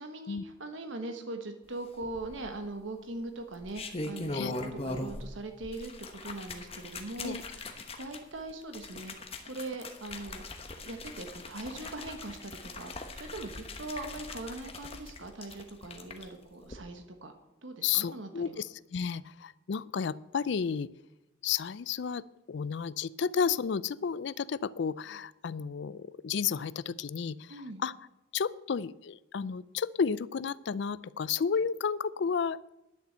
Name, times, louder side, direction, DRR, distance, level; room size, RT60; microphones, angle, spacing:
voice 1, 0.0-10.5 10.8-17.4 17.6-18.6 27.5-27.8, right 2 dB, 70° right, 6 dB, 1.3 m, -41 dB
sound 1, 2.0-2.7 3.5-5.3 5.6-16.2 16.6-16.7, left 2 dB, 30° left, 1.1 m, -41 dB
voice 2, 17.8-20.9 21.4-27.9 28.3-32.7, left 6 dB, 60° left, 19 dB, 0.4 m, -32 dB
11.0 x 6.9 x 8.0 m, 0.95 s
head